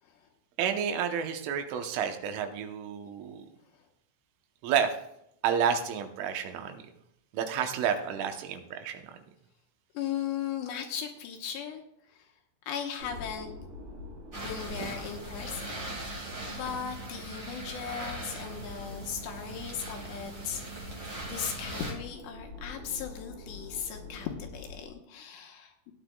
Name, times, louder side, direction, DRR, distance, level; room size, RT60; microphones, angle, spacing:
voice 1, 0.6-3.5 4.6-5.0 5.4-6.8 7.3-9.1, right 7 dB, 90° right, 6 dB, 3.5 m, -30 dB
voice 2, 9.9-11.8 12.1-12.3 12.7-13.5 14.4-16.1 16.5-25.9, left 8 dB, 75° left, 3 dB, 2.9 m, -37 dB
sound 1, 13.0-24.9, left 3 dB, 65° right, 4.1 m, -46 dB
sound 2, 14.3-21.9, right 2 dB, 40° right, 1.7 m, -40 dB
16.5 x 10.0 x 2.3 m, 0.79 s
omnidirectional pair, 5.5 m